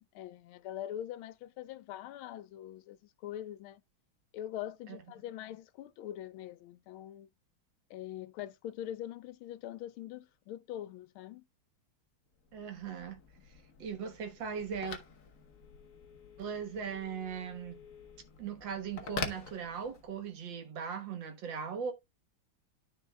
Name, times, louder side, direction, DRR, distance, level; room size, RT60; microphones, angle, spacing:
voice 1, 0.0-3.8 4.3-7.3 7.9-11.4, left 12 dB, 85° left, 1.4 m, -43 dB
Telephone, 12.4-20.3, left 5 dB, 50° left, 1.1 m, -46 dB
voice 2, 12.5-13.2 13.8-15.0 16.4-17.8 18.4-21.9, right 6 dB, 65° right, 2.0 m, -39 dB
13.0 x 4.5 x 2.2 m
omnidirectional pair, 2.3 m